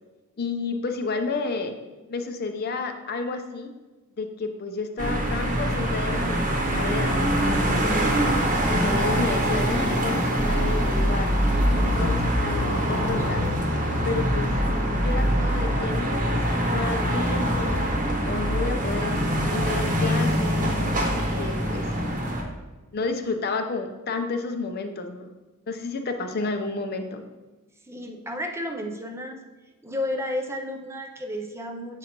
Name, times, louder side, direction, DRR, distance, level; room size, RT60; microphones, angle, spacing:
voice 1, 0.4-1.7 2.1-3.7 4.2-6.5 6.7-7.9 8.7-11.3 11.7-13.5 14.0-14.5 15.0-17.9 18.2-19.2 19.5-20.6 21.4-21.9 22.9-25.3 25.7-27.2, left 3 dB, 45° left, 6 dB, 0.5 m, -31 dB
sound 1, 5.0-22.4, equal, 35° right, 1.0 m, -24 dB
voice 2, 27.8-29.4 29.8-32.0, left 1 dB, 10° right, 2 dB, 0.5 m, -32 dB
7.4 x 5.1 x 2.9 m, 1.2 s
head